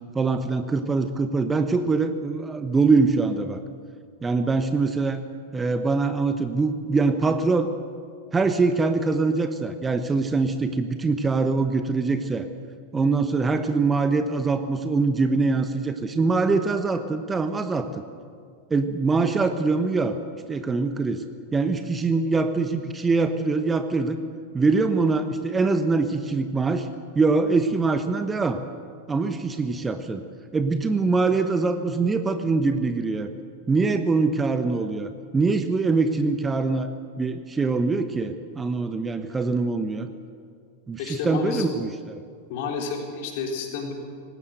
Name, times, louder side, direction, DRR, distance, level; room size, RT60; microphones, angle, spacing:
voice 1, 0.1-3.6 4.2-5.2 5.5-7.7 8.3-12.5 12.9-18.0 18.7-20.2 20.5-21.2 21.5-24.2 24.5-26.9 27.1-28.6 29.1-30.2 30.5-33.3 33.7-36.9 37.2-40.1 40.9-42.2, right 3 dB, 15° right, 9 dB, 1.0 m, -23 dB
voice 2, 41.0-41.7 42.5-43.9, left 4 dB, 50° left, 1 dB, 4.0 m, -30 dB
19.5 x 17.0 x 8.0 m, 2.1 s
figure-of-eight pair, 90°, 0 cm